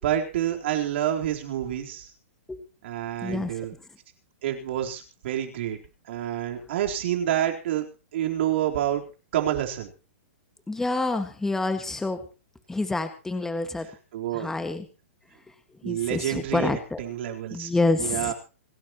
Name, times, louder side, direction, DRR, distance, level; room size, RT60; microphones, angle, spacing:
voice 1, 0.0-2.1 2.8-3.7 4.4-5.8 6.1-7.8 8.1-9.0 9.3-9.9 13.8-14.5 15.8-17.7 18.0-18.3, right 11 dB, 60° right, 2 dB, 4.1 m, -28 dB
voice 2, 3.2-3.5 10.7-12.2 12.7-13.9 14.4-14.9 15.9-17.0 17.5-18.3, left 2 dB, 5° left, 8 dB, 1.8 m, -27 dB
26.5 x 12.0 x 3.1 m, 0.32 s
hypercardioid pair, 135°, 7 cm